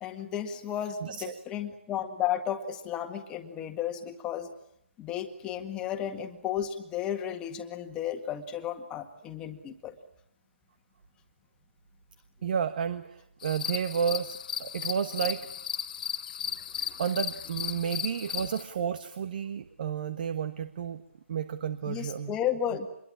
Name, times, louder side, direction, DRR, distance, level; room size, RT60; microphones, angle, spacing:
voice 1, 0.0-4.5 5.0-9.9 16.8-16.9 21.9-22.9, left 10 dB, 10° left, 6 dB, 1.9 m, -33 dB
voice 2, 1.0-1.3 12.4-15.4 17.0-21.0 21.3-22.3, right 7 dB, 40° right, 11 dB, 1.4 m, -31 dB
sound 1, 13.4-18.6, left 9 dB, 35° left, 1.1 m, -35 dB
26.5 x 22.0 x 8.7 m, 0.76 s
figure-of-eight pair, 155°, 7 cm